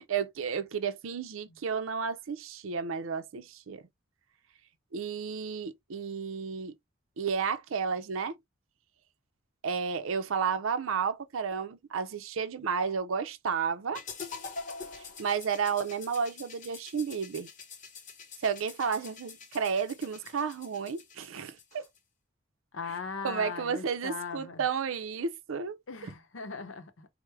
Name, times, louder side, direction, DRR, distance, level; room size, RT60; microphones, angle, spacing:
voice 1, 0.0-3.8 4.9-6.7 7.2-8.4 9.6-14.0 15.2-17.5 18.4-21.8 23.2-26.1, right 6 dB, 85° right, 0.5 m, -32 dB
sound 1, 13.9-22.0, left 5 dB, 40° left, 0.8 m, -45 dB
voice 2, 22.7-24.6 25.9-27.1, left 5 dB, 75° left, 0.7 m, -39 dB
4.6 x 2.1 x 3.3 m
head